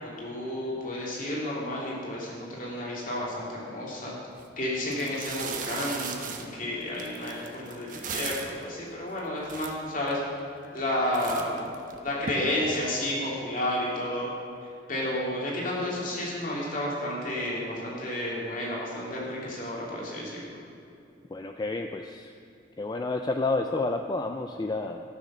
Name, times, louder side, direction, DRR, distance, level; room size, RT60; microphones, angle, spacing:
voice 1, 0.0-4.1 4.6-10.2 10.7-11.6 12.0-14.3 14.9-20.5, left 1 dB, 50° left, -5 dB, 2.8 m, -31 dB
sound 1, 4.3-4.4 4.9-8.6 9.2-9.3 9.4-10.2 10.6-10.9 11.1-12.3, right 6 dB, 50° right, 0.9 m, -37 dB
voice 2, 21.3-22.3 22.8-25.0, left 3 dB, 25° left, 5 dB, 0.4 m, -30 dB
13.0 x 6.6 x 6.3 m, 2.6 s
head